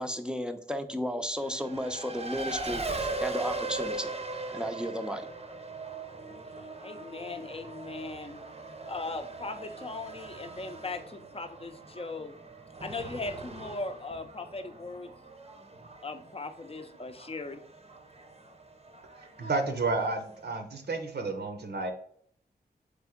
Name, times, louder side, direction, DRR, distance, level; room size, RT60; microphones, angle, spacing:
voice 1, 0.0-4.1 4.5-5.3, equal, 5° right, 0.6 m, -34 dB
Race car auto racing, 1.4-20.5, right 3 dB, 35° right, 0.7 m, -40 dB
voice 2, 6.8-8.4 8.9-12.4 12.8-15.1 16.0-17.6, left 3 dB, 35° left, 0.6 m, -39 dB
voice 3, 19.2-21.9, right 3 dB, 70° right, 0.8 m, -31 dB
3.6 x 3.4 x 3.6 m
cardioid pair, 40°, 18 cm